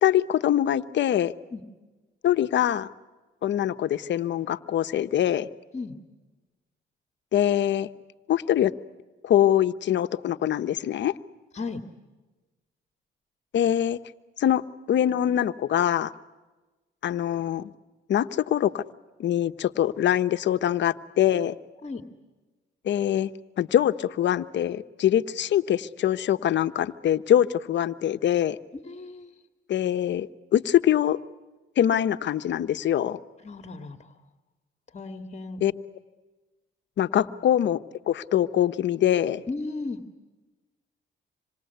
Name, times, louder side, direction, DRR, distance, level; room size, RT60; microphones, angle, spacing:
voice 1, 0.0-1.3 2.2-2.9 3.4-5.5 7.3-7.9 8.3-8.7 9.2-11.1 13.5-14.0 14.4-14.6 14.9-16.1 17.0-17.7 18.1-18.8 19.2-21.6 22.8-23.3 23.6-28.6 29.7-31.2 31.8-33.2 35.6-35.7 37.0-37.8 38.1-39.4, left 11 dB, 65° left, 11 dB, 1.1 m, -23 dB
voice 2, 28.8-29.3 33.4-34.0 34.9-35.6 37.2-37.3 39.5-40.0, left 3 dB, 35° left, 6 dB, 2.0 m, -35 dB
27.0 x 26.0 x 8.2 m, 1.2 s
cardioid pair, 90°, 20 cm